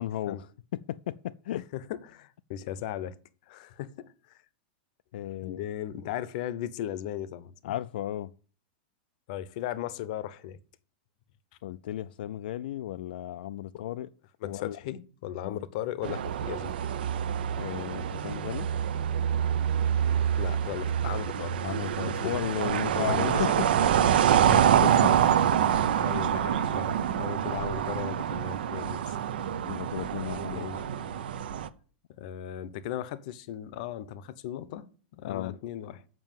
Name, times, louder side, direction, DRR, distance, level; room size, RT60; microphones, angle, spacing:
voice 1, 0.0-1.7 5.1-5.6 7.6-8.3 11.6-14.1 14.4-14.8 15.4-15.6 17.6-18.7 21.6-23.7 24.5-24.6 24.8-25.4 27.5-27.6 29.7-30.8 35.2-35.6, left 13 dB, 75° left, 0.4 m, -35 dB
voice 2, 1.7-3.2 3.5-4.4 5.4-7.7 9.3-10.6 13.7-13.8 14.4-16.7 20.4-21.5 22.1-22.3 22.9-23.5 23.8-23.9 24.3-24.7 26.0-29.2 30.5-31.3 32.2-34.9 35.1-36.0, left 11 dB, 50° left, 0.7 m, -37 dB
sound 1, 16.0-31.7, right 9 dB, 85° right, 0.7 m, -26 dB
7.5 x 5.8 x 7.3 m
supercardioid pair, 160°, 5 cm